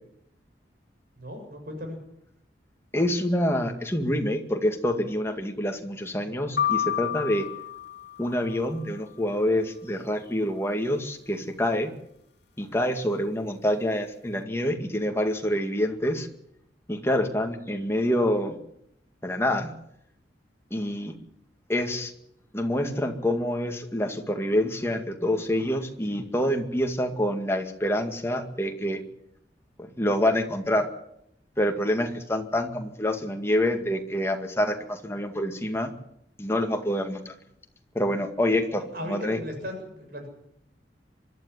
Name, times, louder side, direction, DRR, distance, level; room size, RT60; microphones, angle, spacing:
voice 1, 1.2-2.0 26.1-26.2 38.8-40.3, left 1 dB, 55° right, 4 dB, 7.0 m, -37 dB
voice 2, 2.9-7.5 8.2-11.9 12.6-16.3 16.9-18.6 19.2-19.7 20.7-21.1 21.7-22.1 22.5-29.0 30.0-30.9 31.6-35.9 36.4-37.3 37.9-39.4, left 1 dB, 15° left, 4 dB, 2.1 m, -26 dB
sound 1, 6.6-8.7, left 10 dB, 70° left, 2.2 m, -29 dB
24.5 x 12.0 x 9.9 m, 0.77 s
head